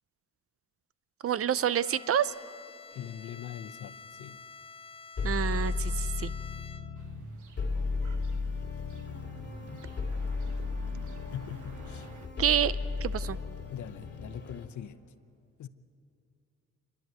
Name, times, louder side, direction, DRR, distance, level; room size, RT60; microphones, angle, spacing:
voice 1, 1.2-2.3 5.2-6.3 12.4-12.7 13.0-13.4, right 9 dB, 50° right, 17 dB, 0.6 m, -28 dB
Bowed string instrument, 1.7-7.2, left 5 dB, 20° left, 0.6 m, -49 dB
voice 2, 2.9-4.4 11.3-12.1 13.7-15.0 15.6-15.7, left 9 dB, 75° left, 10 dB, 0.8 m, -42 dB
sound 1, 2.9-3.1 5.2-7.2 7.6-14.7, left 4 dB, 40° left, 2.7 m, -34 dB
sound 2, 7.0-12.3, right 7 dB, 80° right, 1.3 m, -52 dB
27.5 x 11.0 x 9.2 m, 2.6 s
cardioid pair, 100°, 30 cm